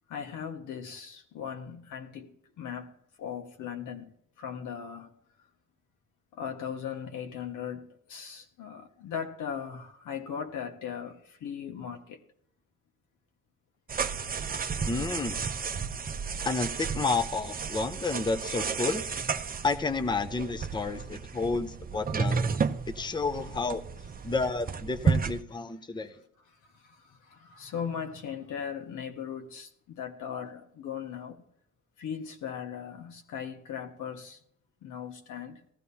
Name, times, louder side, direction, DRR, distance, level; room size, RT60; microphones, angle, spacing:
voice 1, 0.1-5.2 6.3-12.2 26.5-31.4 32.0-34.4 34.8-35.6, left 7 dB, 80° left, 1.6 m, -38 dB
sound 1, 13.9-25.4, right 5 dB, 30° right, 0.7 m, -32 dB
voice 2, 14.9-15.4 16.4-19.1 19.6-22.4 22.9-23.8 24.2-26.1, left 4 dB, 15° left, 0.7 m, -30 dB
18.0 x 13.5 x 2.8 m
cardioid pair, 90°, 30 cm